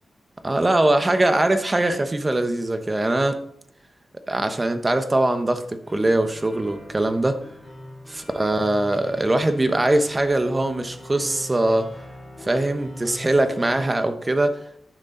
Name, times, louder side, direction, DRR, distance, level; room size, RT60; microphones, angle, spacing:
voice 1, 0.4-3.4 4.3-7.4 8.3-11.9 12.4-14.6, right 1 dB, 20° right, 8 dB, 1.0 m, -21 dB
sound 1, 5.8-13.8, left 1 dB, 10° left, 3.4 m, -41 dB
10.5 x 6.7 x 3.8 m, 0.69 s
wide cardioid pair, 105°, 0 cm